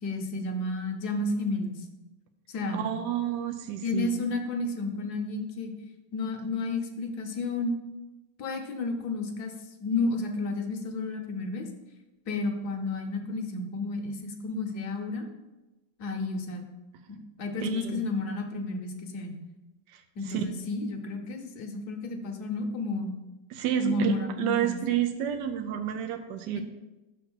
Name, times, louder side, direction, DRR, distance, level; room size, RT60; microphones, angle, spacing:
voice 1, 0.0-1.7 2.5-2.8 3.8-5.7 6.1-7.7 8.4-9.5 9.8-11.7 12.3-15.2 16.0-16.6 17.1-19.4 20.2-23.1 23.8-24.8 26.5-26.6, left 3 dB, 60° left, 4 dB, 1.2 m, -31 dB
voice 2, 2.7-4.1 17.6-18.0 19.9-20.0 20.3-20.4 23.5-26.6, right 10 dB, 75° right, 5 dB, 1.1 m, -30 dB
6.4 x 3.8 x 6.1 m, 1.1 s
omnidirectional pair, 2.1 m